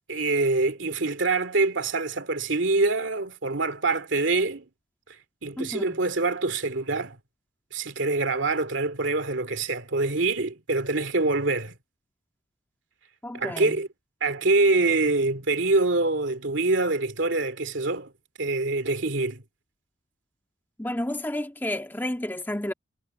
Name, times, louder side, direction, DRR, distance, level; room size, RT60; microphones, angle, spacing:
voice 1, 0.1-4.6 5.4-7.2 7.7-11.7 13.3-13.9 14.2-18.1 18.4-19.4, right 3 dB, 70° right, 2.4 m, -25 dB
voice 2, 5.6-6.0 13.2-13.8 20.8-22.7, left 1 dB, 10° left, 1.7 m, -31 dB
head